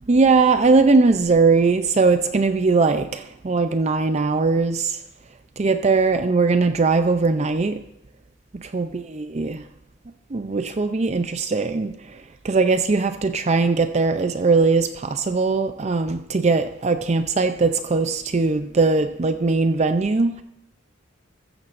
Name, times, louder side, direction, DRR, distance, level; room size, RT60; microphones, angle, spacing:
voice 1, 0.1-4.9 5.6-7.8 8.7-9.6 10.3-11.9 12.4-20.4, right 4 dB, 35° right, 9 dB, 0.4 m, -20 dB
14.5 x 14.0 x 2.5 m, 0.83 s
head